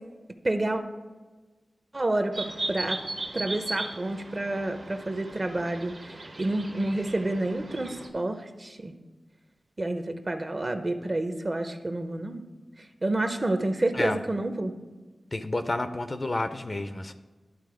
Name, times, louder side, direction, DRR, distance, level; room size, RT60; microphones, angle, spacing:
voice 1, 0.4-0.8 1.9-3.0 3.3-5.9 6.4-8.9 9.8-12.4 13.0-14.7, right 2 dB, 35° right, 7 dB, 0.7 m, -29 dB
sound 1, 2.3-8.1, right 2 dB, 65° right, 1.3 m, -37 dB
voice 2, 15.3-17.1, left 2 dB, 35° left, 9 dB, 0.5 m, -30 dB
11.5 x 3.9 x 4.9 m, 1.3 s
wide cardioid pair, 70°, 0 cm